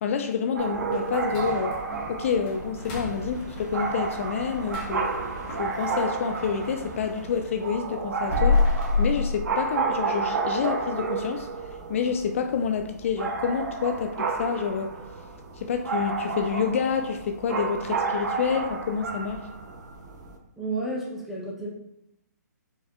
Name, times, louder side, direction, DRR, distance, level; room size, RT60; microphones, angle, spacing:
voice 1, 0.0-1.8 2.1-5.1 5.5-8.7 9.0-11.5 11.9-14.9 15.6-19.4, left 6 dB, 45° left, 6 dB, 0.3 m, -28 dB
sound 1, 0.6-20.4, right 4 dB, 70° right, 0.7 m, -31 dB
sound 2, 0.9-6.8 7.2-10.1 10.4-10.5 11.0-11.1 11.6-12.0 12.3-12.4 12.9-13.0, left 3 dB, 30° left, 1.2 m, -29 dB
sound 3, 2.7-8.3, right 1 dB, 55° right, 1.1 m, -43 dB
voice 2, 20.6-21.7, right 2 dB, 5° right, -4 dB, 0.7 m, -31 dB
4.5 x 4.1 x 2.4 m, 0.80 s
hypercardioid pair, 150°, 10 cm